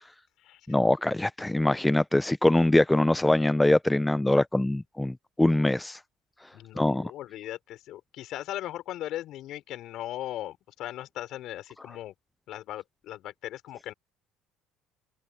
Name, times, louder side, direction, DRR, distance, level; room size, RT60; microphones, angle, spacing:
voice 1, 0.7-6.0 6.8-7.1, left 1 dB, 5° left, 0.5 m, -23 dB
voice 2, 6.5-12.1 12.5-13.9, left 13 dB, 65° left, 5.4 m, -38 dB
open air
cardioid pair, 120°, 0 cm